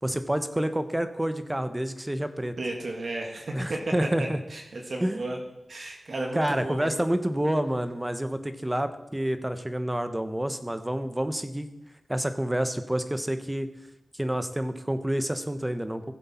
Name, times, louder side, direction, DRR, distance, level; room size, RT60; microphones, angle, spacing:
voice 1, 0.0-2.5 3.5-4.4 5.0-5.2 6.3-11.7 12.1-13.7 14.1-16.1, right 1 dB, 15° right, 10 dB, 1.0 m, -28 dB
voice 2, 2.6-5.4 5.7-7.1, right 2 dB, 65° right, 1 dB, 2.0 m, -34 dB
15.5 x 7.8 x 4.4 m, 0.93 s
wide cardioid pair, 70°, 0 cm